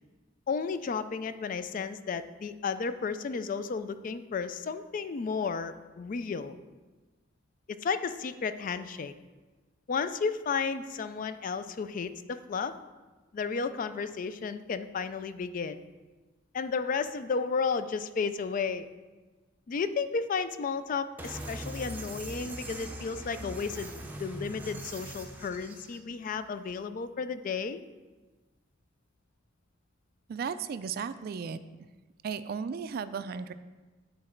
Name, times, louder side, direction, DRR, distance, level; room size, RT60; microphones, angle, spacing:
voice 1, 0.5-6.6 7.7-9.1 9.9-12.7 13.3-15.8 16.5-18.9 19.7-23.9 24.2-27.8, left 5 dB, 45° left, 12 dB, 0.3 m, -33 dB
sound 1, 21.2-26.0, right 1 dB, 10° right, 0.7 m, -41 dB
voice 2, 30.3-31.6 32.2-33.5, right 6 dB, 50° right, 13 dB, 0.3 m, -35 dB
8.7 x 4.0 x 4.4 m, 1.2 s
head